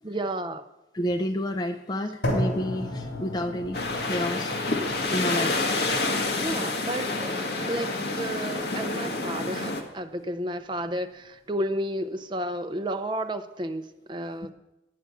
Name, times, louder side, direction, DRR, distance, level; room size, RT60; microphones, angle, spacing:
voice 1, 0.0-0.6 6.4-14.5, right 1 dB, 25° right, 8 dB, 0.6 m, -32 dB
voice 2, 0.9-4.6 5.1-5.7, equal, 20° left, 5 dB, 0.4 m, -30 dB
sound 1, 2.2-10.3, left 1 dB, 85° left, 3.3 m, -35 dB
sound 2, 3.7-9.8, left 2 dB, 60° left, 1.4 m, -28 dB
9.4 x 7.6 x 8.1 m, 0.98 s
head